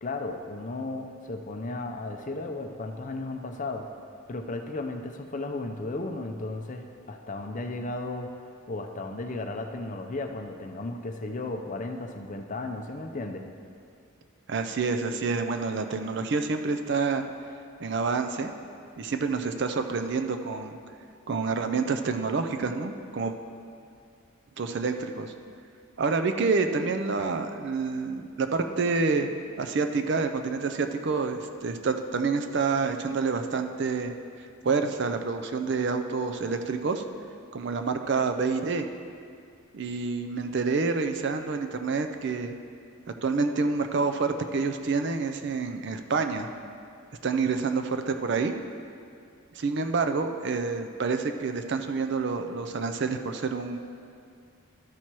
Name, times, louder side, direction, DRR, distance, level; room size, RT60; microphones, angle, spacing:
voice 1, 0.0-3.9 4.3-8.3 8.7-13.5, left 2 dB, 35° left, 5 dB, 0.5 m, -35 dB
voice 2, 14.5-17.2 17.8-18.5 19.0-20.8 21.3-23.4 24.6-25.3 26.0-29.3 29.6-34.1 34.6-37.0 37.5-38.9 39.7-42.6 43.2-46.5 47.2-48.5 49.5-53.8, right 4 dB, 55° right, 7 dB, 0.4 m, -28 dB
13.0 x 4.4 x 4.6 m, 2.3 s
head